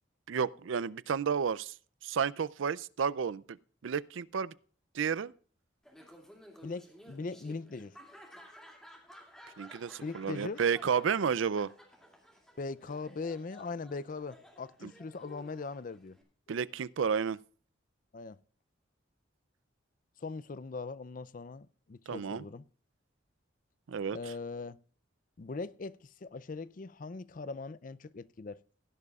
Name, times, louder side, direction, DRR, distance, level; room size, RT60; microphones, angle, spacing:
voice 1, 0.3-1.7 2.0-3.6 3.8-4.5 4.9-5.3 9.6-11.7 14.8-14.9 16.5-17.4 22.1-22.4 23.9-24.3, right 6 dB, 80° right, 0.4 m, -31 dB
Laughter, 5.8-16.2, equal, 5° left, 2.4 m, -55 dB
voice 2, 6.6-8.0 10.0-10.6 12.6-16.2 18.1-18.4 20.2-22.6 24.1-24.8 25.4-28.6, left 3 dB, 45° left, 0.4 m, -40 dB
16.5 x 11.0 x 2.4 m
head